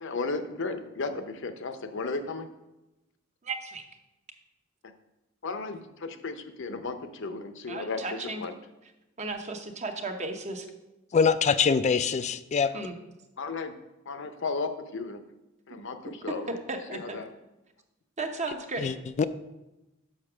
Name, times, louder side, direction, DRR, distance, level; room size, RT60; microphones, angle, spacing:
voice 1, 0.0-2.5 4.8-4.9 5.4-8.5 12.7-12.8 13.4-13.7 14.1-15.2 15.7-16.6 16.9-17.3, left 3 dB, 65° left, 9 dB, 0.7 m, -34 dB
voice 2, 3.4-3.8 7.7-8.4 9.2-10.7 12.7-12.9 16.7-17.2 18.2-18.9, right 3 dB, 35° right, 4 dB, 0.9 m, -35 dB
voice 3, 11.1-12.7 18.8-19.2, left 6 dB, 35° left, 14 dB, 0.3 m, -24 dB
6.5 x 5.8 x 6.0 m, 0.99 s
head